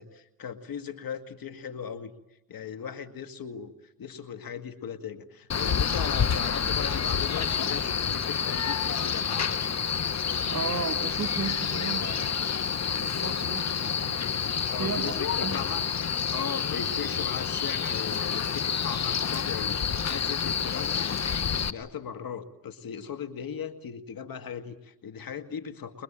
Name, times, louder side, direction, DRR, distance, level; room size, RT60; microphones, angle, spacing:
voice 1, 0.0-2.1 2.5-9.6 14.7-15.9 16.3-21.3 21.6-26.0, left 7 dB, 65° left, 10 dB, 2.2 m, -38 dB
Male speech man speaking, 5.5-21.7, left 7 dB, 45° left, 1.3 m, -28 dB
voice 2, 10.5-12.4 13.0-14.3 14.8-15.6, right 6 dB, 50° right, 12 dB, 1.8 m, -35 dB
29.5 x 22.0 x 9.0 m, 0.88 s
supercardioid pair, 55°, 37 cm